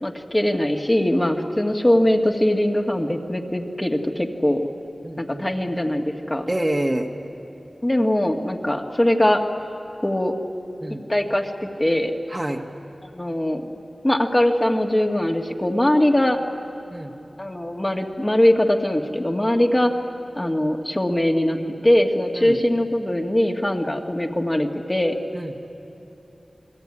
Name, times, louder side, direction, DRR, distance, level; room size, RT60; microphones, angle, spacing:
voice 1, 0.0-4.6 5.2-6.5 7.8-9.4 10.0-10.3 11.1-12.1 13.1-13.7 14.0-16.4 17.4-19.9 20.4-25.2, left 1 dB, 20° left, 2 dB, 2.0 m, -21 dB
voice 2, 5.0-5.4 6.5-7.1 10.8-11.0 12.3-12.6 16.9-17.1 22.4-22.6 25.3-25.5, right 1 dB, 25° right, 3 dB, 1.6 m, -26 dB
29.0 x 21.0 x 9.9 m, 2.9 s
wide cardioid pair, 65°, 0 cm